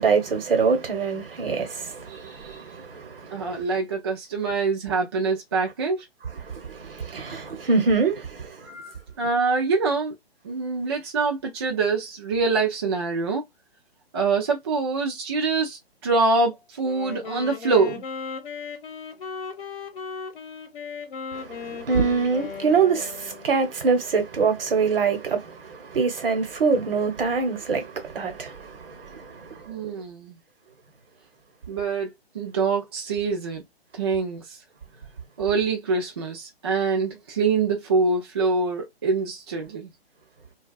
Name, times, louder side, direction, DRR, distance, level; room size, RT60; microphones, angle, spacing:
voice 1, 0.0-3.6 6.4-8.6 21.3-29.6, right 5 dB, 60° right, 1.0 m, -25 dB
voice 2, 3.3-6.1 8.6-10.1 10.4-13.4 14.1-18.0 29.7-30.4 31.7-33.6 33.9-34.6 35.4-39.9, right 4 dB, 25° right, 0.4 m, -25 dB
Wind instrument woodwind instrument, 16.8-23.6, left 6 dB, 55° left, 0.9 m, -36 dB
2.5 x 2.3 x 2.3 m
figure-of-eight pair, 140°, 32 cm